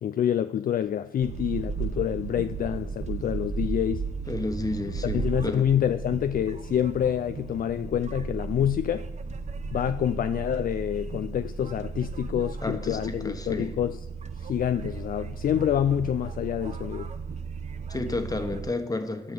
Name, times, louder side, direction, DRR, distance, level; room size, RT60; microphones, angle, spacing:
voice 1, 0.0-4.1 5.0-9.1 9.7-14.0 14.4-17.1, left 10 dB, 45° left, 0.4 m, -27 dB
sound 1, 1.2-18.7, right 5 dB, 35° right, 0.7 m, -35 dB
voice 2, 4.3-5.6 12.6-13.7 17.9-19.3, left 2 dB, 20° left, 1.3 m, -31 dB
12.5 x 6.0 x 6.8 m
cardioid pair, 90°, 20 cm